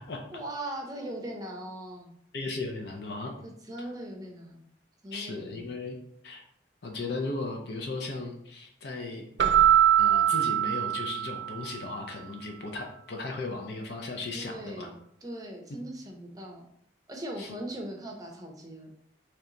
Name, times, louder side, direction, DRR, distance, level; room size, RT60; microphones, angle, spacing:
voice 1, 0.3-2.1 3.4-4.6 5.0-5.7 14.3-14.9 15.2-16.6 17.1-18.9, right 1 dB, 20° right, 1 dB, 0.6 m, -39 dB
voice 2, 2.3-3.3 5.1-6.0 6.2-6.4 6.8-9.3 9.6-9.7 10.0-14.9 15.7-15.8 17.4-17.6, left 3 dB, 55° left, 2 dB, 0.5 m, -36 dB
Keyboard (musical), 9.4-11.8, right 11 dB, 60° right, 0.3 m, -23 dB
3.3 x 2.8 x 3.7 m, 0.72 s
head